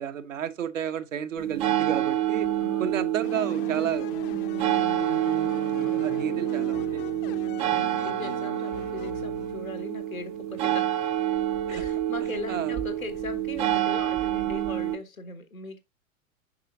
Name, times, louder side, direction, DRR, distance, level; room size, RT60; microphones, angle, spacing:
voice 1, 0.0-2.5 2.8-4.1 6.0-7.0 11.7-11.8 12.5-12.7, right 8 dB, 65° right, 1.1 m, -32 dB
sound 1, 1.4-15.0, right 12 dB, 15° right, 0.4 m, -28 dB
voice 2, 2.6-3.1 5.8-6.4 7.6-11.1 11.7-15.8, left 4 dB, 85° left, 1.4 m, -40 dB
sound 2, 3.2-9.9, left 11 dB, 40° left, 0.7 m, -40 dB
6.6 x 5.8 x 2.7 m
figure-of-eight pair, 95°, 41 cm